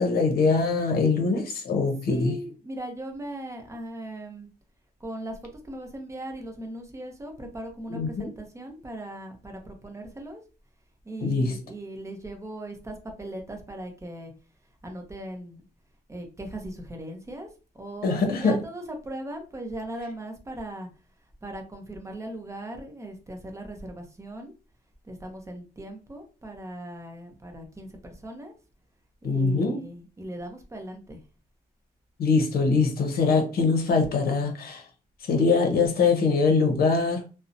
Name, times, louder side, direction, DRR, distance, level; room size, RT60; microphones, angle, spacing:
voice 1, 0.0-2.3 7.9-8.3 11.2-11.5 18.0-18.5 29.2-29.8 32.2-34.8 35.3-37.2, left 4 dB, 65° left, 0.7 m, -23 dB
voice 2, 2.1-4.5 5.0-10.4 11.0-14.3 14.8-15.6 16.1-17.5 17.7-20.9 21.4-24.6 25.0-28.6 29.2-31.2, right 1 dB, 15° right, 0.6 m, -38 dB
2.7 x 2.0 x 2.5 m
cardioid pair, 105°, 17 cm